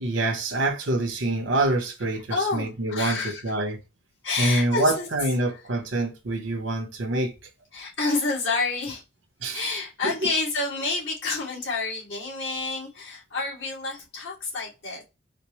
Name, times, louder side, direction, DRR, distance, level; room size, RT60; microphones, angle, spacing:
voice 1, 0.0-3.2 3.4-3.8 4.4-7.3 9.4-9.6 10.0-10.1, right 2 dB, 75° right, 0.9 m, -26 dB
voice 2, 2.3-3.5 4.2-5.1 5.5-5.6 7.7-9.0 9.5-15.0, left 3 dB, 75° left, 2.0 m, -29 dB
4.3 x 2.1 x 3.0 m
head